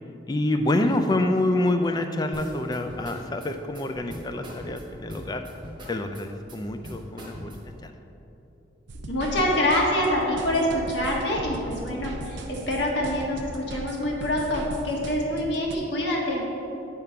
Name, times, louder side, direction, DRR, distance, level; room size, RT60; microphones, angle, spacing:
voice 1, 0.3-5.4 5.9-7.9, left 1 dB, 20° left, 6 dB, 0.4 m, -27 dB
sound 1, 2.3-7.8, equal, 25° right, 1.0 m, -42 dB
sound 2, 8.9-15.8, right 1 dB, 70° right, 0.6 m, -38 dB
voice 2, 9.1-16.4, left 1 dB, 65° left, -2 dB, 1.5 m, -26 dB
9.3 x 3.7 x 5.6 m, 2.9 s
head